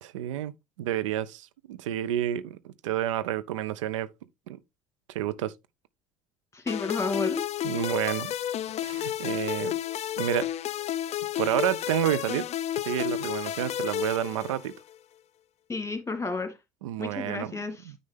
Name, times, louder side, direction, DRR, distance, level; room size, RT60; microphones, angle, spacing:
voice 1, 0.0-0.5 0.8-4.1 4.5-4.6 5.1-5.5 7.6-8.3 8.8-9.8 10.2-10.5 11.4-12.5 12.8-14.7 16.8-17.6 17.9-18.0, right 12 dB, 75° right, 0.5 m, -29 dB
voice 2, 6.5-7.4 15.7-16.6 17.0-17.9, left 3 dB, 15° left, 2.1 m, -31 dB
sound 1, 6.7-14.9, left 12 dB, 45° left, 0.5 m, -31 dB
9.5 x 5.4 x 3.3 m
hypercardioid pair, 60°, 16 cm